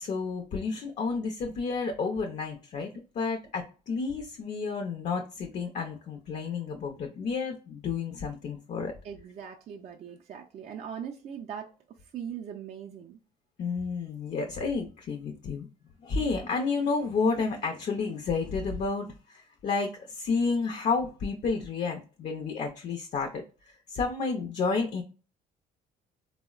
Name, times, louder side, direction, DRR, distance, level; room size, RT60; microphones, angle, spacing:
voice 1, 0.0-8.9 13.6-15.7 16.0-25.0, left 4 dB, 45° left, 0.5 m, -31 dB
voice 2, 9.0-11.7 12.1-13.2, right 8 dB, 40° right, 0.4 m, -40 dB
3.5 x 2.0 x 2.3 m
cardioid pair, 110°, 17 cm